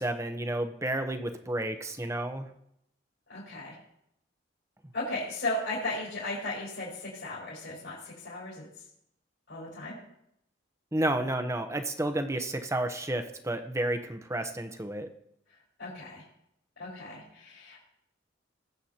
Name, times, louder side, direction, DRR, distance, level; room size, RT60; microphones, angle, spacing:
voice 1, 0.0-2.5 10.9-15.1, right 1 dB, 15° right, 7 dB, 0.9 m, -31 dB
voice 2, 3.3-3.7 4.9-8.7 9.5-9.9 15.8-16.2 16.8-17.9, left 2 dB, 70° left, -8 dB, 4.8 m, -36 dB
20.0 x 7.9 x 2.9 m, 0.75 s
head